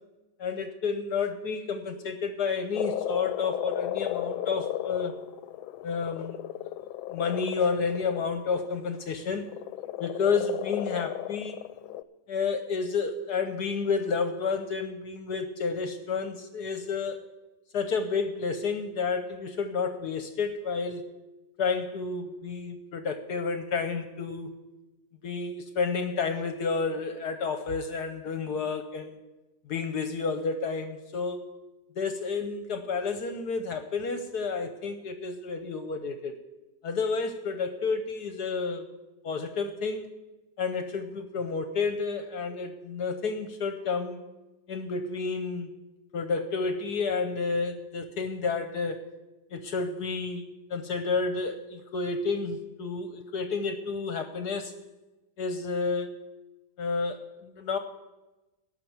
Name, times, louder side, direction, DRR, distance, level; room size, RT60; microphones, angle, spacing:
voice 1, 0.4-5.1 5.8-6.4 7.1-9.5 10.0-11.6 12.3-17.2 17.7-21.0 21.6-24.6 25.2-29.2 29.7-31.5 32.0-36.4 36.8-38.9 39.2-40.1 40.6-44.2 44.7-45.7 46.1-49.1 49.5-54.7 55.4-56.2 56.8-57.8, left 4 dB, 65° left, 8 dB, 1.1 m, -30 dB
Frog, 2.7-8.7 9.5-12.0, left 13 dB, 85° left, 1.4 m, -35 dB
13.5 x 5.7 x 9.4 m, 1.1 s
omnidirectional pair, 2.2 m